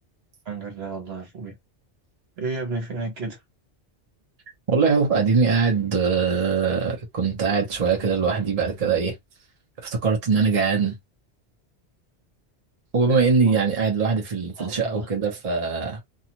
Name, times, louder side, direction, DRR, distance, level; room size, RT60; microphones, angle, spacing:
voice 1, 0.4-1.6 2.4-3.4 14.6-15.1, right 3 dB, 65° right, 1.3 m, -32 dB
voice 2, 4.7-9.1 9.9-11.0 12.9-16.0, right 5 dB, 35° right, 0.9 m, -22 dB
2.6 x 2.4 x 2.9 m
omnidirectional pair, 1.1 m